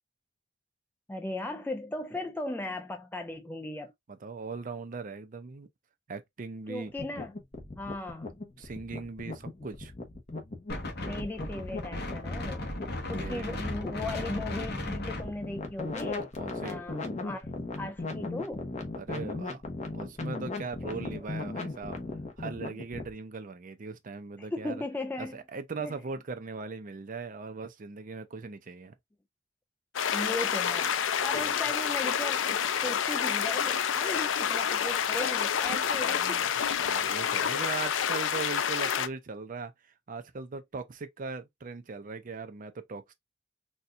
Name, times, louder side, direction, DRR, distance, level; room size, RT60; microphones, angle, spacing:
voice 1, 1.1-3.9 6.7-7.3 7.8-8.4 10.9-12.7 13.1-16.3 16.6-17.5 17.8-18.6 21.1-21.2 24.4-25.4 25.8-25.9 30.1-31.0 31.2-36.4, left 2 dB, 10° left, 0.3 m, -37 dB
voice 2, 4.1-5.7 6.1-6.9 8.6-9.9 13.1-13.7 16.4-16.8 19.0-19.6 19.9-22.0 22.4-24.8 25.2-28.9 31.3-31.5 36.0-36.5 36.8-39.7 40.1-43.1, right 4 dB, 45° right, 0.5 m, -39 dB
sound 1, 6.9-23.1, left 2 dB, 35° left, 0.8 m, -38 dB
Wind, 10.7-16.2, left 1 dB, 55° left, 1.1 m, -36 dB
sound 2, 29.9-39.1, left 8 dB, 75° left, 0.4 m, -28 dB
4.2 x 2.3 x 2.5 m
head